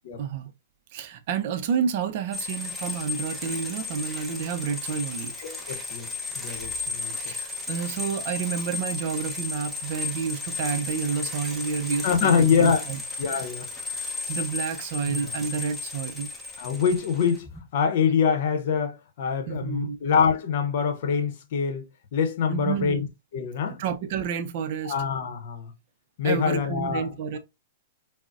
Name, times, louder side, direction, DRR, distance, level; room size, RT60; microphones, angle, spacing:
voice 1, 0.2-0.5 0.9-5.3 7.2-13.5 14.3-16.3 19.5-20.0 22.5-23.0 23.8-24.9 26.2-27.4, right 7 dB, 50° right, 0.4 m, -30 dB
sound 1, 2.3-17.6, left 4 dB, ahead, 0.7 m, -34 dB
voice 2, 5.4-6.1 6.4-7.3 12.0-12.8 13.2-13.7 15.0-15.2 16.6-17.5 17.7-23.1 23.3-23.8 24.8-25.7 26.2-27.0, left 6 dB, 60° left, 0.7 m, -25 dB
3.8 x 2.0 x 2.4 m
hypercardioid pair, 130°, 0 cm